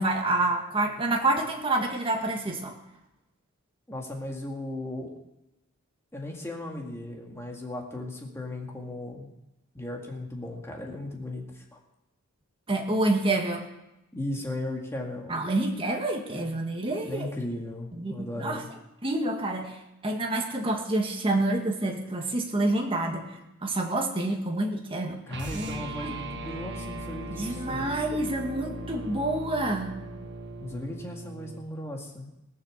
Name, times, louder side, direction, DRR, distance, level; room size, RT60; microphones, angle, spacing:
voice 1, 0.0-2.7 12.7-13.7 15.3-17.3 18.0-18.6 19.0-19.8 20.0-25.2 25.5-26.1 27.4-30.0, right 2 dB, 25° right, 2 dB, 1.8 m, -28 dB
voice 2, 3.9-5.2 6.1-9.3 9.7-11.8 14.1-15.5 17.0-18.7 25.3-27.9 30.6-32.3, left 1 dB, 10° left, 0 dB, 2.1 m, -36 dB
sound 1, 25.3-31.7, right 1 dB, 50° right, 1.4 m, -38 dB
19.0 x 6.9 x 6.7 m, 0.92 s
head